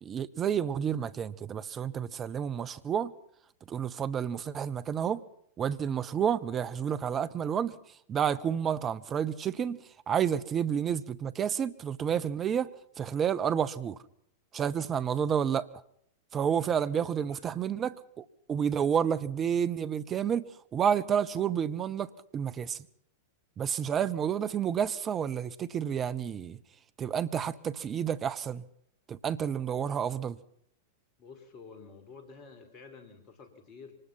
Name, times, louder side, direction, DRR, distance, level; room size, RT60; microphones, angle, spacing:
voice 1, 0.0-3.1 3.7-5.2 5.6-7.8 8.1-9.8 10.1-12.7 13.0-14.0 14.5-15.7 16.3-20.4 20.7-22.8 23.6-26.6 27.0-28.6 29.1-30.4, right 8 dB, 25° right, 1.0 m, -30 dB
voice 2, 17.3-17.6 31.2-34.0, left 5 dB, 40° left, 4.8 m, -50 dB
24.5 x 20.5 x 5.9 m
figure-of-eight pair, 95°, 0 cm